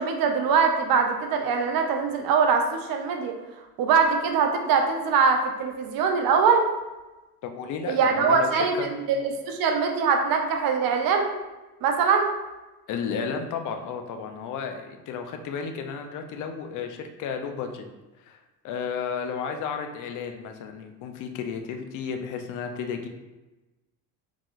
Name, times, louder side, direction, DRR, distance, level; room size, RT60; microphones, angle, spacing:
voice 1, 0.0-3.3 3.8-6.6 7.9-11.3 11.8-12.3, right 5 dB, 45° right, 4 dB, 0.7 m, -22 dB
voice 2, 7.4-8.5 8.8-8.9 12.9-17.9 18.3-18.4 18.6-23.1, left 6 dB, 40° left, 5 dB, 0.6 m, -33 dB
4.8 x 3.6 x 2.5 m, 1.1 s
hypercardioid pair, 70°, 49 cm